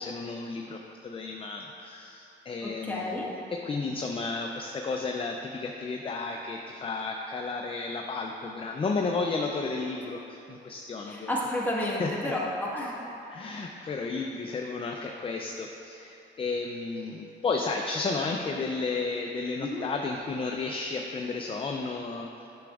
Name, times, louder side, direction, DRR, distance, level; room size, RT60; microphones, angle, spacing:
voice 1, 0.0-11.3 12.0-12.3 13.3-22.5, left 3 dB, 30° left, 2 dB, 0.4 m, -33 dB
voice 2, 2.6-3.3 11.0-13.0 19.6-19.8, left 1 dB, 10° left, -5 dB, 1.5 m, -31 dB
10.0 x 6.1 x 2.4 m, 2.9 s
cardioid pair, 90°, 20 cm